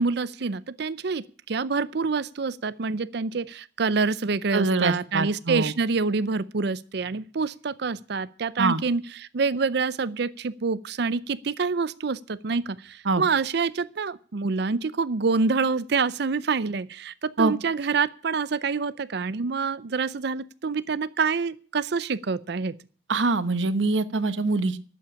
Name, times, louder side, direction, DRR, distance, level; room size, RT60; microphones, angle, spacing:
voice 1, 0.0-22.7, right 4 dB, 60° right, 16 dB, 0.6 m, -27 dB
voice 2, 4.5-5.7 8.6-8.8 13.0-13.2 17.4-17.5 23.1-24.8, right 3 dB, 80° right, 13 dB, 1.1 m, -24 dB
12.0 x 8.5 x 8.6 m, 0.41 s
head